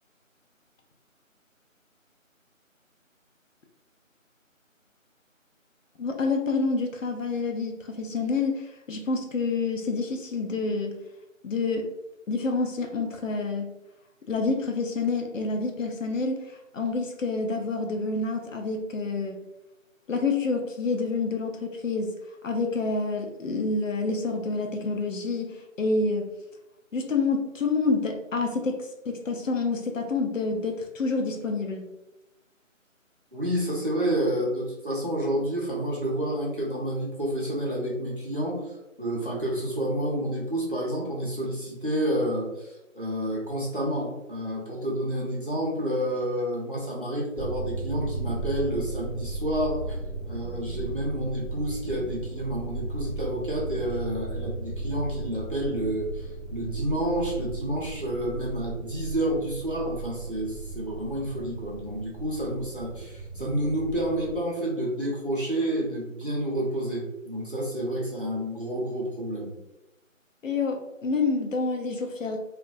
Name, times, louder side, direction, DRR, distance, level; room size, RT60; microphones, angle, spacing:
voice 1, 6.0-11.0 11.4-11.9 12.3-13.7 14.3-19.4 20.1-22.1 22.4-26.3 26.9-31.8 70.4-72.4, left 3 dB, 70° left, 3 dB, 0.5 m, -28 dB
voice 2, 33.3-38.6 39.0-42.7 42.9-50.0 50.2-56.2 56.5-69.5, right 1 dB, 40° right, -5 dB, 0.6 m, -29 dB
sound 1, 47.4-64.4, right 3 dB, ahead, 1.1 m, -36 dB
2.4 x 2.1 x 2.5 m, 0.95 s
figure-of-eight pair, 180°, 40 cm